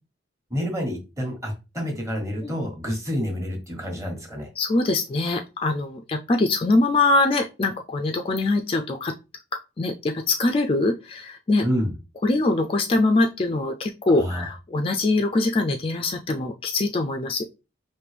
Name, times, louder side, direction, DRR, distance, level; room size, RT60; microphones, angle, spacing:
voice 1, 0.5-4.5 11.6-11.9 14.1-14.5, equal, 15° right, 2 dB, 1.2 m, -28 dB
voice 2, 4.6-9.1 9.8-11.6 12.2-17.4, left 2 dB, 30° left, 4 dB, 0.4 m, -23 dB
5.2 x 2.6 x 3.3 m, 0.28 s
head